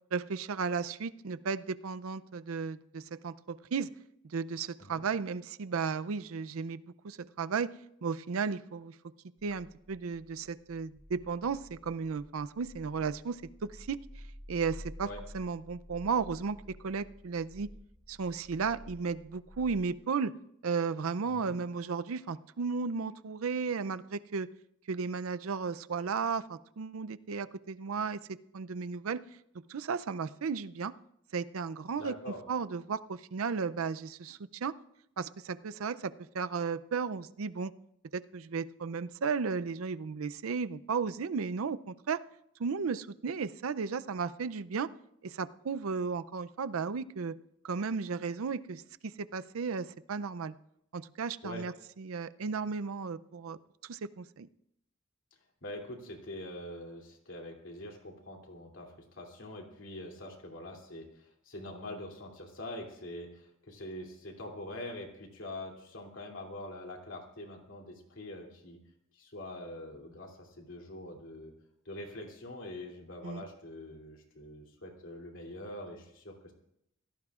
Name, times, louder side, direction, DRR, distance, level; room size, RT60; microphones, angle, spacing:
voice 1, 0.1-3.9 4.2-7.7 8.0-8.9 9.4-14.0 14.5-15.1 15.3-17.7 18.1-20.3 20.6-24.5 24.9-28.2 28.5-29.2 29.7-30.9 31.3-32.2 32.5-34.7 35.2-37.7 38.1-42.2 42.6-44.9 45.2-47.4 47.6-50.5 50.9-54.5 73.2-73.4, right 5 dB, 80° right, 14 dB, 0.5 m, -34 dB
sound 1, 9.4-19.8, equal, 45° left, 5.7 m, -51 dB
voice 2, 32.0-32.4 51.4-51.7 55.6-68.8 69.1-71.5 71.8-76.5, left 1 dB, 65° left, 2 dB, 2.9 m, -44 dB
25.0 x 17.0 x 2.4 m, 0.77 s
head